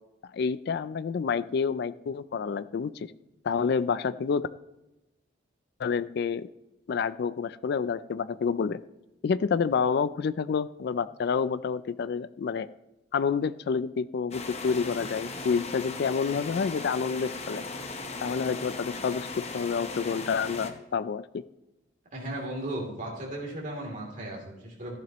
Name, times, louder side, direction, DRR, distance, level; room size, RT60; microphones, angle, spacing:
voice 1, 0.3-3.1 3.4-4.5 5.8-6.5 6.9-8.8 9.2-12.7 13.1-17.7 18.2-21.4, left 6 dB, 55° left, 14 dB, 0.3 m, -28 dB
sound 1, 14.3-20.7, left 3 dB, 35° left, 0.8 m, -38 dB
voice 2, 22.1-25.0, right 1 dB, 40° right, -2 dB, 3.0 m, -36 dB
15.0 x 10.5 x 3.0 m, 0.96 s
head